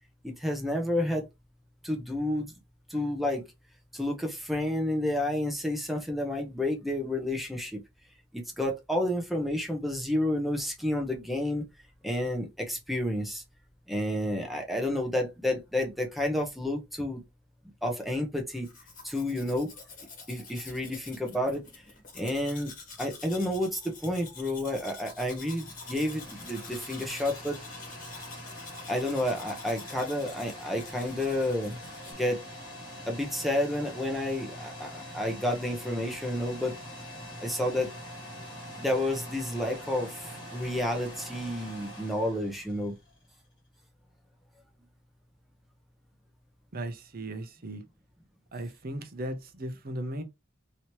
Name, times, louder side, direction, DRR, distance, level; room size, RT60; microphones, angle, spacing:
voice 1, 0.2-1.3 1.8-2.5 2.9-3.4 3.9-7.8 8.3-11.7 12.0-13.4 13.9-17.2 17.8-18.7 19.0-19.7 20.3-21.6 22.1-22.7 23.0-27.6 28.9-31.8 32.1-32.4 33.1-36.8 37.4-37.9 38.8-42.9, left 1 dB, ahead, 0.8 m, -30 dB
Domestic sounds home sounds, 18.5-32.1, left 4 dB, 40° left, 1.3 m, -47 dB
sound 1, 25.0-43.2, equal, 25° left, 1.6 m, -44 dB
voice 2, 46.7-47.8 48.5-50.2, right 1 dB, 50° right, 0.7 m, -37 dB
3.1 x 2.9 x 3.0 m
head